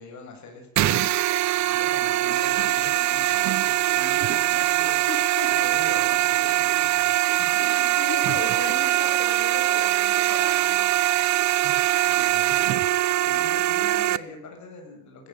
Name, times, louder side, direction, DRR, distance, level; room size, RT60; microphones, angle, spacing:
voice 1, 0.0-5.1 5.5-7.7 12.0-12.7 13.2-15.3, left 3 dB, 50° left, 3 dB, 7.4 m, -43 dB
sound 1, 0.8-14.2, right 14 dB, 50° right, 0.8 m, -22 dB
voice 2, 5.1-5.7 7.6-10.8, left 6 dB, 75° left, 1 dB, 5.3 m, -36 dB
20.0 x 16.0 x 9.3 m, 0.70 s
cardioid pair, 175°, 36 cm